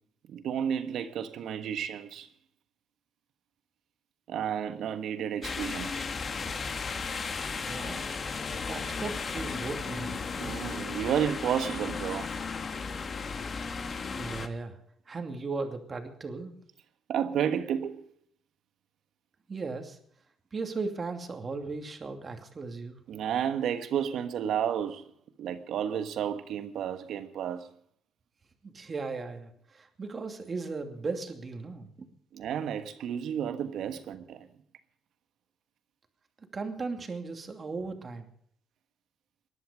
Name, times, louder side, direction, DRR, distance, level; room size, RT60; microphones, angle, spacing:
voice 1, 0.3-2.3 4.3-6.1 10.4-12.3 17.1-18.0 23.1-25.0 25.4-27.7 32.3-34.5, right 8 dB, 75° right, 1.3 m, -31 dB
sound 1, 5.4-14.5, left 5 dB, 40° left, 1.5 m, -35 dB
voice 2, 7.6-8.0 8.7-10.2 14.1-14.8 15.1-16.5 19.5-20.0 20.5-23.0 28.6-32.1 36.4-38.2, right 4 dB, 35° right, 2.6 m, -37 dB
19.0 x 11.5 x 5.1 m
cardioid pair, 90°, 0 cm